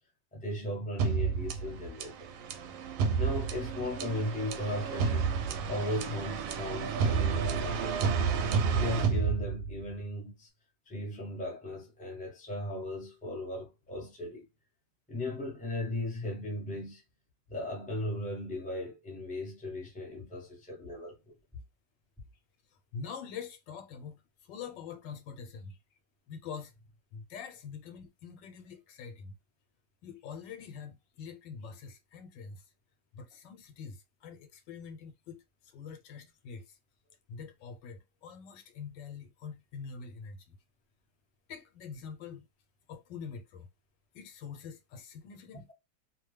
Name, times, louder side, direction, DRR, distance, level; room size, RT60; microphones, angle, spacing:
voice 1, 0.3-2.3 3.2-5.4 5.7-8.2 8.7-10.5 10.9-14.4 15.1-17.0 17.5-21.3, left 1 dB, 5° left, 0.8 m, -37 dB
sound 1, 1.0-9.9, right 6 dB, 85° right, 1.3 m, -30 dB
voice 2, 22.7-25.8 26.3-26.7 27.1-29.3 30.0-32.7 33.1-36.8 37.3-40.6 41.5-42.5 42.9-43.7 44.1-45.7, left 6 dB, 80° left, 1.4 m, -45 dB
3.1 x 2.2 x 3.2 m
omnidirectional pair, 1.9 m